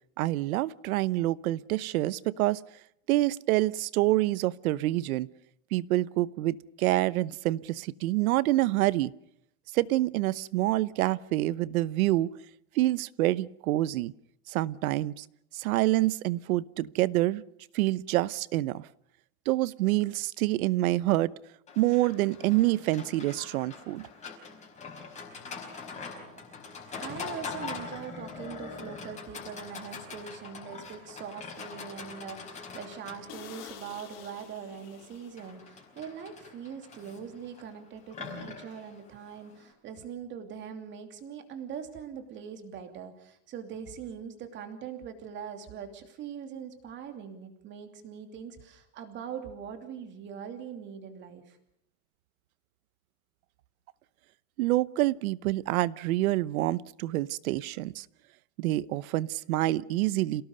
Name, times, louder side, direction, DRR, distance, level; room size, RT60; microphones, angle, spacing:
voice 1, 0.2-2.6 3.1-5.3 5.7-9.1 9.7-12.3 12.8-14.1 14.5-15.2 15.5-17.4 17.7-18.9 19.5-21.3 21.8-24.1 54.6-58.0 58.6-60.4, right 17 dB, 85° right, 20 dB, 1.0 m, -27 dB
Livestock farm animals working animals, 21.7-39.7, left 5 dB, 15° left, 4.8 m, -43 dB
voice 2, 27.0-51.6, right 7 dB, 25° right, 7 dB, 2.9 m, -42 dB
sound 1, 30.6-31.1 31.5-31.6 32.0-32.1 32.4-32.5 32.9-33.0 33.3-35.8 36.1-36.3, left 8 dB, 40° left, 4.1 m, -49 dB
28.0 x 18.0 x 6.7 m, 0.75 s
supercardioid pair, 180°, 41 cm